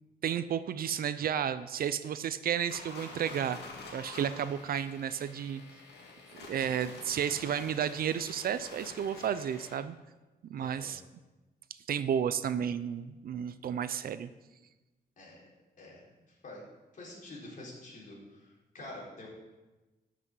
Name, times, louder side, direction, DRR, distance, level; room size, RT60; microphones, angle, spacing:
voice 1, 0.2-3.6 3.9-5.6 6.5-9.9 10.5-11.0 11.9-14.3, right 8 dB, 60° right, 13 dB, 0.5 m, -32 dB
sound 1, 2.7-9.8, left 3 dB, 90° left, 2.0 m, -48 dB
voice 2, 10.6-10.9 15.2-15.4 15.8-16.0 16.4-16.6 16.9-19.3, left 1 dB, 50° left, -4 dB, 3.9 m, -47 dB
12.0 x 6.2 x 6.2 m, 1.1 s
wide cardioid pair, 150°, 17 cm